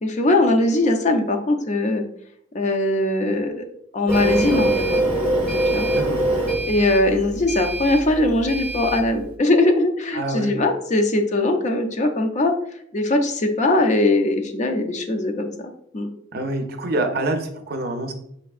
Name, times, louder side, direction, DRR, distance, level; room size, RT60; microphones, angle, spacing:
voice 1, 0.0-2.0 2.5-3.6 3.9-5.0 5.7-5.9 6.7-12.5 12.9-15.5 15.9-16.1, left 2 dB, 40° left, 4 dB, 0.5 m, -20 dB
Printer, 4.1-9.1, right 1 dB, 10° right, 0.8 m, -23 dB
voice 2, 10.1-10.5 16.3-18.1, right 2 dB, 55° right, 6 dB, 0.5 m, -26 dB
5.2 x 3.3 x 2.4 m, 0.71 s
head